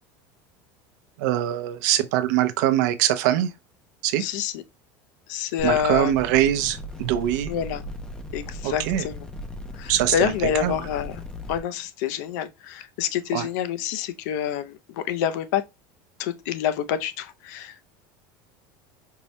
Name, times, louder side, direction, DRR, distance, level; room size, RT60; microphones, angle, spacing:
voice 1, 1.2-3.5 4.0-4.2 5.6-7.5 8.6-9.0 9.9-10.3 10.6-10.7 13.3-13.5, right 12 dB, 80° right, 0.5 m, -23 dB
voice 2, 4.2-4.6 5.3-6.1 7.5-7.8 8.3-9.2 9.7-11.2 11.5-15.6 16.2-17.8, left 9 dB, 75° left, 0.4 m, -27 dB
sound 1, 5.6-11.6, equal, 10° left, 0.4 m, -37 dB
4.6 x 2.1 x 2.7 m
cardioid pair, 170°, 10 cm